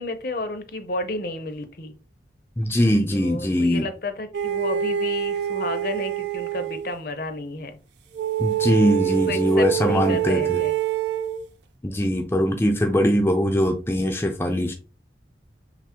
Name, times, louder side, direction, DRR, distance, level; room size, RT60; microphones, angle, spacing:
voice 1, 0.0-1.9 3.1-7.8 8.8-8.9 9.3-10.7, left 2 dB, 55° left, 0.7 m, -32 dB
voice 2, 2.6-3.9 8.4-10.6 11.8-14.7, equal, 15° left, 0.5 m, -21 dB
sound 1, 4.3-6.9 8.1-11.4, right 11 dB, 75° right, 0.4 m, -25 dB
5.9 x 2.0 x 4.3 m
head